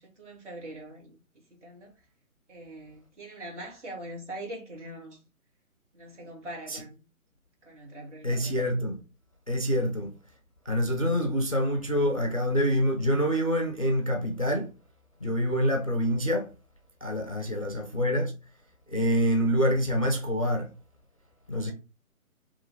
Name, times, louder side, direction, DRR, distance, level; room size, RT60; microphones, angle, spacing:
voice 1, 0.0-1.9 2.5-5.3 5.9-7.0 7.6-8.5 17.4-17.7, right 1 dB, 55° right, 2.4 m, -43 dB
voice 2, 8.2-9.0 9.5-10.1 10.7-14.7 15.2-16.5 17.0-18.3 18.9-20.7 21.5-21.7, equal, 25° left, 0.5 m, -26 dB
3.9 x 2.9 x 4.1 m
figure-of-eight pair, 145°, 43 cm